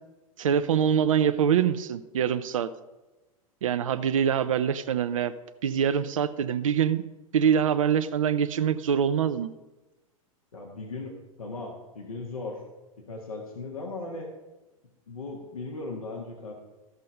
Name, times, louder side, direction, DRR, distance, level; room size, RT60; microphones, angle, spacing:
voice 1, 0.4-2.7 3.6-5.3 5.6-7.0 7.3-9.5, right 8 dB, 65° right, 11 dB, 0.5 m, -24 dB
voice 2, 10.5-12.6 13.0-14.3 15.1-16.5, left 3 dB, 75° left, 1 dB, 1.6 m, -37 dB
14.0 x 6.3 x 5.4 m, 1.1 s
figure-of-eight pair, 90°, 18 cm